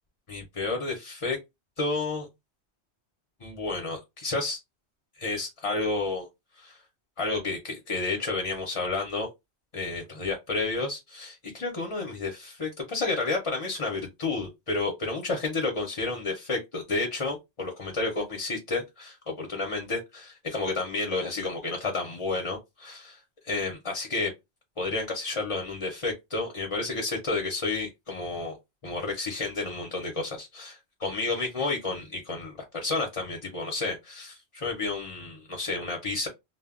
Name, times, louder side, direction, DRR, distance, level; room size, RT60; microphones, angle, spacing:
voice 1, 0.3-1.4 1.8-2.3 3.4-4.6 5.2-6.3 6.6-6.8 7.2-9.3 9.7-24.3 24.8-28.6 28.8-36.3, left 3 dB, 40° left, 0.5 m, -31 dB
2.1 x 2.0 x 3.5 m
omnidirectional pair, 1.1 m